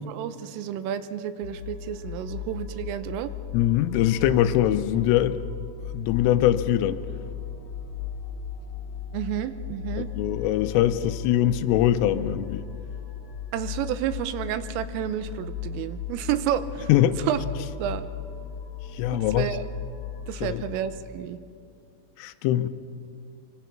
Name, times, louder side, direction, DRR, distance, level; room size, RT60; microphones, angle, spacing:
voice 1, 0.1-3.3 9.1-10.1 13.5-16.9 17.2-17.4 17.8-18.0 19.1-19.7 20.3-21.4, right 10 dB, 85° right, 12 dB, 3.4 m, -30 dB
sound 1, 1.4-20.9, left 7 dB, 55° left, 3.6 m, -36 dB
voice 2, 3.5-5.4 5.9-7.0 10.0-12.7 16.9-17.2 18.9-19.5 20.4-20.6 22.2-22.7, left 12 dB, 85° left, 11 dB, 3.3 m, -22 dB
24.5 x 24.5 x 5.9 m, 2.5 s
omnidirectional pair, 5.9 m